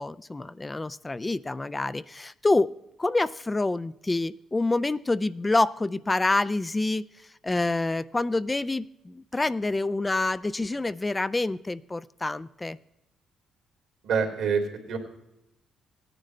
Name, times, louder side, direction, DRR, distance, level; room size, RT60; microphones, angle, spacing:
voice 1, 0.0-2.7 3.0-7.1 7.4-12.8, left 2 dB, 20° left, 15 dB, 0.4 m, -27 dB
voice 2, 14.0-15.0, right 6 dB, 80° right, 3 dB, 2.9 m, -26 dB
17.5 x 10.0 x 3.3 m, 0.88 s
cardioid pair, 90°, 0 cm